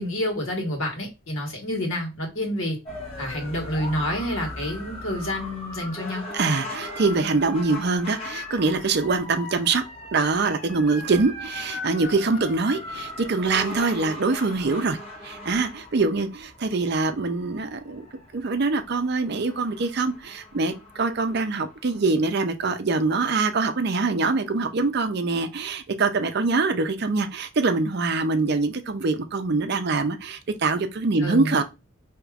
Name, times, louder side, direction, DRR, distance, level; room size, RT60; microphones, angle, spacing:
voice 1, 0.0-2.8 3.2-6.2 31.2-31.5, left 1 dB, 70° left, 1.6 m, -28 dB
sound 1, 2.8-22.0, left 1 dB, 25° left, 0.9 m, -39 dB
voice 2, 6.3-9.8 10.1-15.0 15.2-18.1 18.3-31.6, right 3 dB, 50° right, 0.5 m, -24 dB
4.9 x 2.9 x 2.3 m
head